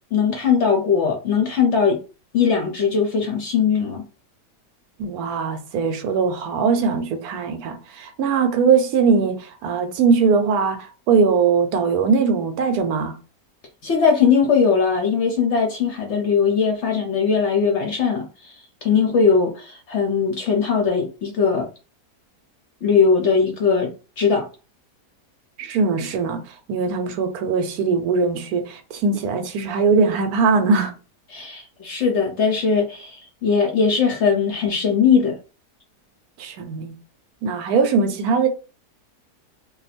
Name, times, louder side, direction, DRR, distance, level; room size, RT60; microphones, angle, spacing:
voice 1, 0.1-2.0 2.3-4.1 13.8-18.5 18.8-21.7 22.8-23.9 24.2-24.5 31.3-35.4, left 6 dB, 60° left, 0.8 m, -20 dB
voice 2, 5.0-13.2 25.6-30.9 36.4-36.9 37.4-38.5, right 5 dB, 75° right, 1.0 m, -20 dB
2.5 x 2.3 x 4.1 m
omnidirectional pair, 1.7 m